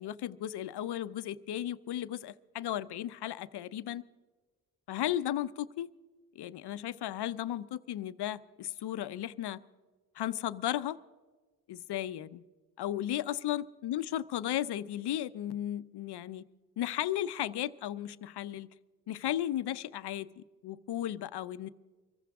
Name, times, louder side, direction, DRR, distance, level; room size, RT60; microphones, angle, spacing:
voice 1, 0.0-4.0 4.9-5.9 6.3-9.6 10.2-11.0 11.7-12.4 12.8-16.4 16.8-18.7 19.1-21.7, left 12 dB, 75° left, 0.7 m, -35 dB
24.0 x 15.0 x 3.6 m
supercardioid pair, 50°, 40 cm